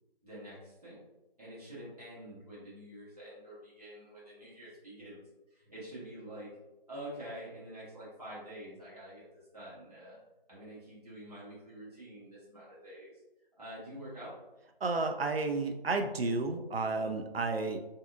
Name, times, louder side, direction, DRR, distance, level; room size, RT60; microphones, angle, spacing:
voice 1, 0.2-1.0 1.4-5.2 5.5-6.5 6.9-10.2 10.5-13.1 13.6-14.3, right 1 dB, 40° right, -9 dB, 1.2 m, -47 dB
voice 2, 14.8-17.8, right 3 dB, 80° right, 5 dB, 0.5 m, -32 dB
2.7 x 2.4 x 2.4 m, 0.99 s
figure-of-eight pair, 175°, 29 cm